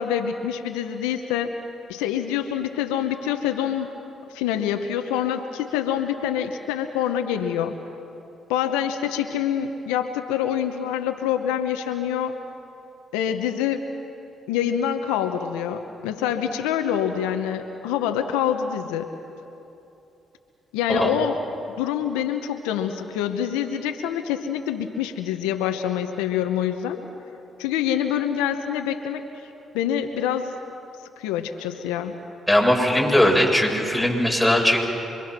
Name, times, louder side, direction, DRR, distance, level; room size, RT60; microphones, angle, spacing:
voice 1, 0.0-1.5 1.9-3.9 4.3-7.7 8.5-12.3 13.1-13.9 14.5-19.1 20.7-21.4 21.8-27.0 27.6-29.2 29.7-30.6 31.2-32.2, left 9 dB, 90° left, 6 dB, 1.1 m, -26 dB
voice 2, 32.5-34.8, left 1 dB, ahead, 0 dB, 7.0 m, -19 dB
27.0 x 24.0 x 6.1 m, 2.9 s
hypercardioid pair, 50°, 0 cm